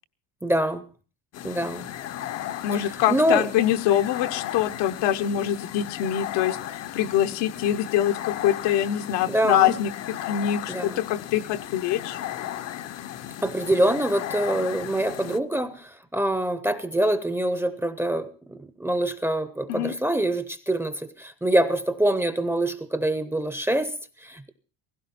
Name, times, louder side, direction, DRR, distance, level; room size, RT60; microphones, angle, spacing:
voice 1, 0.4-0.8 1.4-1.9 3.1-3.5 9.3-9.8 10.7-11.0 13.4-24.5, right 1 dB, 5° right, 0.6 m, -25 dB
sound 1, 1.3-15.4, left 12 dB, 40° left, 0.6 m, -35 dB
voice 2, 2.6-12.2 19.7-19.9, left 11 dB, 80° left, 1.2 m, -24 dB
17.5 x 16.0 x 4.2 m
cardioid pair, 170°, 41 cm